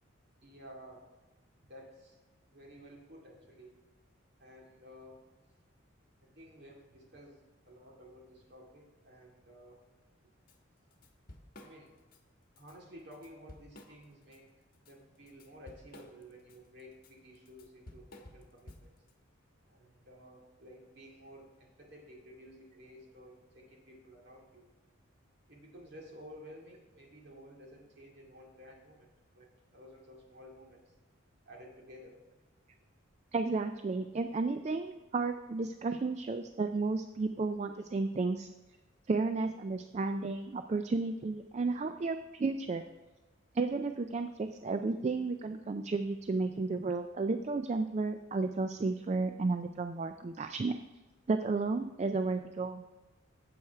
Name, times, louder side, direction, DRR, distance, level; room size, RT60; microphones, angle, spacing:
voice 1, 0.4-1.1 1.6-2.2 2.5-3.7 4.4-5.2 6.2-9.8 11.6-11.9 12.6-14.5 14.8-19.0 19.7-24.6 25.5-30.9 31.5-32.2, equal, 55° right, -1 dB, 2.3 m, -53 dB
Drum kit / Drum, 10.5-10.6 10.9-12.2 12.6-12.7 13.1-14.4 14.7-19.1, left 1 dB, 45° left, 1.1 m, -54 dB
voice 2, 33.3-38.5 39.1-42.8 43.5-50.8 51.3-52.8, right 3 dB, 35° right, 8 dB, 0.3 m, -33 dB
8.6 x 7.9 x 4.6 m, 1.2 s
head